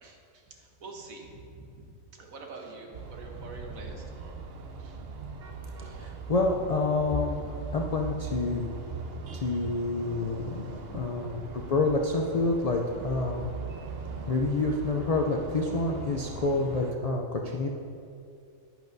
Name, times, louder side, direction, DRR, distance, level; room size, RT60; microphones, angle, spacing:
voice 1, 0.0-1.8 2.1-4.4 4.8-5.0 10.9-11.2, right 3 dB, 85° right, 1 dB, 1.6 m, -45 dB
sound 1, 2.9-16.9, right 4 dB, 55° right, 0.8 m, -40 dB
voice 2, 5.8-8.7 9.3-13.5 14.3-17.7, left 3 dB, 60° left, 1 dB, 0.4 m, -28 dB
11.0 x 10.5 x 2.7 m, 2.5 s
omnidirectional pair, 1.4 m